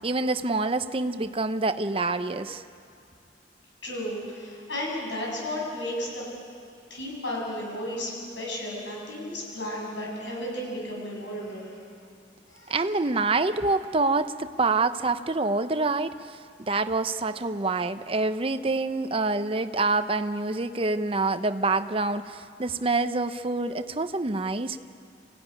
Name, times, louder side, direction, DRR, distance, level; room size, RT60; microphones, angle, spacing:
voice 1, 0.0-2.6 12.7-16.4 16.7-24.8, right 3 dB, 30° right, 10 dB, 0.7 m, -26 dB
voice 2, 3.8-6.3 6.9-11.8 12.5-12.8, left 1 dB, 85° left, -3 dB, 7.9 m, -34 dB
26.5 x 16.0 x 9.8 m, 2.4 s
head